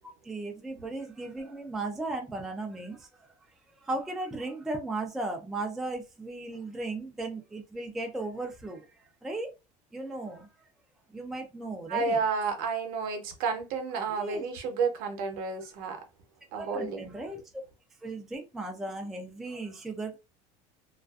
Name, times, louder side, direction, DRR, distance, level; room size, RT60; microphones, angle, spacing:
voice 1, 0.2-3.3 3.8-8.9 9.2-9.5 9.9-10.5 11.1-12.2 14.1-14.4 16.6-17.4 18.0-20.2, right 2 dB, ahead, 0.3 m, -36 dB
voice 2, 11.9-16.0 16.5-17.1, right 5 dB, 60° right, 0.7 m, -31 dB
2.4 x 2.4 x 2.3 m
cardioid pair, 155°, 17 cm